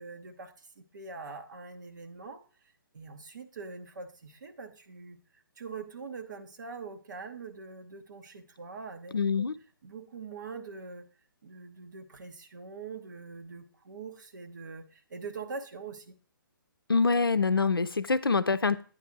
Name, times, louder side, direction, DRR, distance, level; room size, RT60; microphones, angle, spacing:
voice 1, 0.0-2.4 2.9-5.2 5.6-9.2 9.8-11.1 11.4-16.1, right 4 dB, 55° right, 6 dB, 1.0 m, -43 dB
voice 2, 9.1-9.5 16.9-18.8, left 4 dB, 80° left, 12 dB, 0.5 m, -25 dB
9.2 x 3.3 x 6.0 m, 0.40 s
figure-of-eight pair, 135°, 12 cm